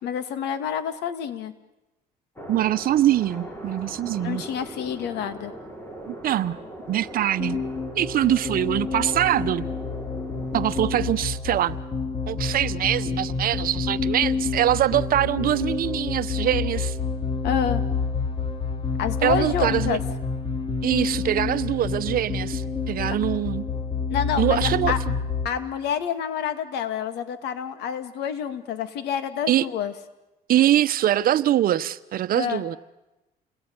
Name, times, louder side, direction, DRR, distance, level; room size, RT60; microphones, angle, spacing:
voice 1, 0.0-1.5 4.2-5.5 17.4-17.8 19.0-20.0 24.1-25.0 25.4-29.9 32.4-32.6, left 8 dB, 80° left, 2.4 m, -28 dB
sound 1, 2.4-11.1, right 1 dB, 15° left, 6.3 m, -40 dB
voice 2, 2.5-4.4 6.1-6.6 6.9-7.6 7.9-9.7 10.5-11.8 12.3-17.0 19.2-20.0 20.8-23.6 24.4-24.9 29.5-29.7 30.5-32.8, right 12 dB, 60° right, 1.0 m, -23 dB
sound 2, 7.4-25.5, left 5 dB, 30° left, 3.6 m, -28 dB
29.5 x 21.0 x 9.7 m
cardioid pair, 110°, 17 cm